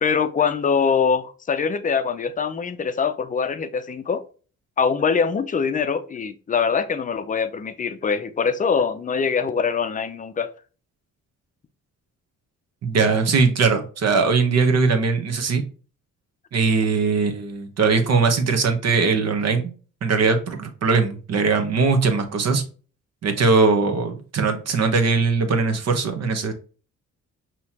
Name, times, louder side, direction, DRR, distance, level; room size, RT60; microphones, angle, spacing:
voice 1, 0.0-4.2 4.8-10.5, left 6 dB, 25° left, 0.5 m, -23 dB
voice 2, 12.8-15.6 16.5-19.6 20.0-22.6 23.2-26.5, right 4 dB, 55° right, 1.0 m, -20 dB
5.5 x 3.0 x 2.8 m
cardioid pair, 90°, 30 cm